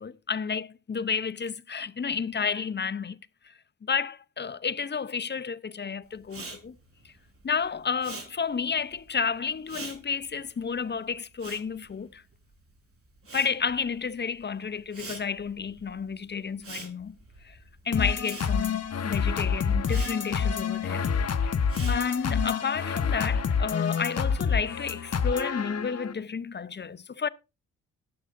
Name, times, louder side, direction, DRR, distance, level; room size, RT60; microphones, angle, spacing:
voice 1, 0.0-3.2 3.8-6.8 7.4-12.2 13.3-17.2 17.4-17.6 17.8-21.1 21.4-21.6 21.9-27.3, left 6 dB, 30° left, 0.7 m, -31 dB
Respiratory sounds, 6.2-12.7 13.0-22.4, right 3 dB, 40° right, 4.5 m, -45 dB
sound 1, 17.9-26.1, left 6 dB, 45° left, 1.3 m, -27 dB
15.5 x 11.5 x 2.6 m
supercardioid pair, 55°, 33 cm